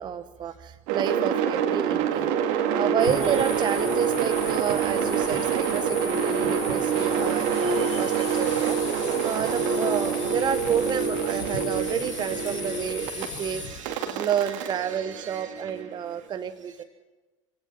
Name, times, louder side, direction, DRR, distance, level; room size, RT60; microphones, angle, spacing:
voice 1, 0.0-2.3 2.7-8.8 9.2-13.6 14.0-16.8, right 8 dB, 25° right, 10 dB, 0.8 m, -30 dB
sound 1, 0.9-13.3 13.9-16.0, right 7 dB, 50° right, 2.1 m, -26 dB
sound 2, 3.0-13.8, left 5 dB, 65° left, 4.1 m, -37 dB
voice 2, 7.6-9.9 10.2-10.4 11.5-14.3 14.9-15.5, right 7 dB, 70° right, 5 dB, 2.7 m, -45 dB
25.0 x 17.0 x 7.3 m, 1.2 s
figure-of-eight pair, 75°, 17 cm